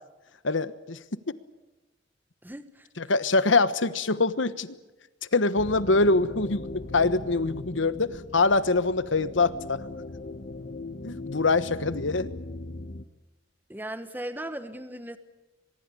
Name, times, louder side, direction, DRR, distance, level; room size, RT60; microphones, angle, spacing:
voice 1, 0.4-1.0 3.0-4.8 5.3-6.7 6.9-9.8 11.0-12.3, left 3 dB, 80° left, 15 dB, 1.2 m, -24 dB
voice 2, 2.4-2.9 13.7-15.2, right 1 dB, 10° right, 10 dB, 1.2 m, -37 dB
sound 1, 5.6-13.0, left 2 dB, 45° left, 1.2 m, -39 dB
24.5 x 22.0 x 8.5 m, 1.1 s
head